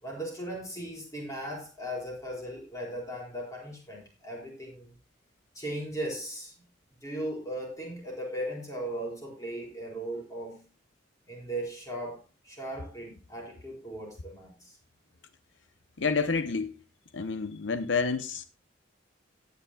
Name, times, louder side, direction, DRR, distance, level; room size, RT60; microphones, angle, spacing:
voice 1, 0.0-4.9 5.5-6.5 7.0-10.6 11.3-14.8, right 1 dB, 15° left, 4.5 m, -37 dB
voice 2, 16.0-16.7 17.1-18.4, left 4 dB, 70° left, 0.7 m, -29 dB
18.0 x 9.6 x 2.3 m
head